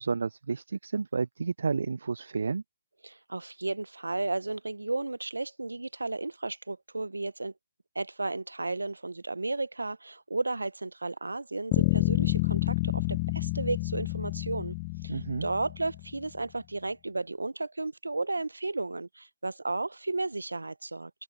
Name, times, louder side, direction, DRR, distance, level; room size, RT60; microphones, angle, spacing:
voice 1, 0.0-2.6 15.1-15.5, right 4 dB, 75° right, 0.3 m, -31 dB
voice 2, 3.0-7.5 7.9-14.8 15.0-21.1, right 2 dB, 90° right, 0.9 m, -33 dB
Bass guitar, 11.7-16.1, left 26 dB, 30° left, 0.4 m, -29 dB
open air
figure-of-eight pair, 135°, 0 cm